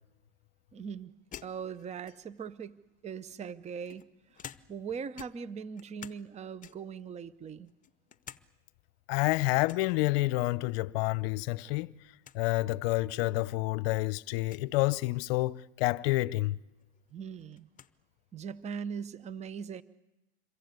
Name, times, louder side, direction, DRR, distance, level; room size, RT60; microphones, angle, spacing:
voice 1, 0.7-1.1 1.4-4.1 4.3-7.7 17.1-17.7 18.3-19.8, right 6 dB, 20° right, 0.9 m, -40 dB
sound 1, 1.3-2.5 3.3-4.9 5.1-6.3 6.6-7.0 7.5-8.5 8.8-8.9 9.6-9.9 11.3-11.7 12.0-12.1 12.2-12.4 13.2-13.3 14.4-14.7 16.4-16.5 16.8-17.9, left 9 dB, 20° left, 1.0 m, -50 dB
voice 2, 9.1-11.9 12.3-16.6, left 20 dB, 55° left, 0.8 m, -29 dB
27.0 x 23.0 x 8.2 m
hypercardioid pair, 105°, 36 cm